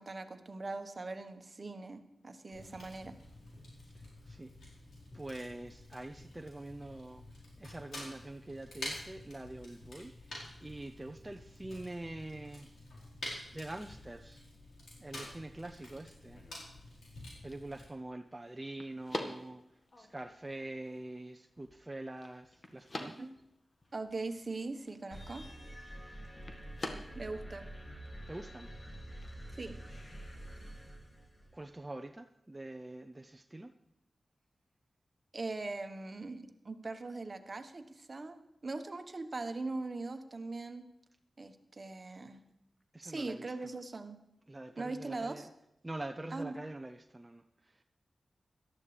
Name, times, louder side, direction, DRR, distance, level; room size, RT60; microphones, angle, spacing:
voice 1, 0.0-3.1 23.2-23.3 23.9-25.5 27.1-27.7 29.5-29.8 35.3-40.8 41.4-42.4 43.0-44.2 44.8-45.5 46.3-46.5, right 3 dB, 45° right, 8 dB, 1.2 m, -41 dB
Fire, 2.5-17.8, left 1 dB, 85° left, 4.5 m, -49 dB
voice 2, 3.7-4.5 5.1-12.7 13.5-14.4 15.0-16.5 17.4-19.6 20.0-23.3 28.3-28.7 31.5-33.7 42.9-43.5 44.5-45.5 45.8-47.8, right 2 dB, 20° right, 5 dB, 0.7 m, -45 dB
sound 1, 15.2-30.6, left 2 dB, 50° left, 1.6 m, -49 dB
sound 2, 25.1-31.7, right 1 dB, 20° left, 2.4 m, -47 dB
17.5 x 12.5 x 3.4 m, 0.82 s
cardioid pair, 50°, 0 cm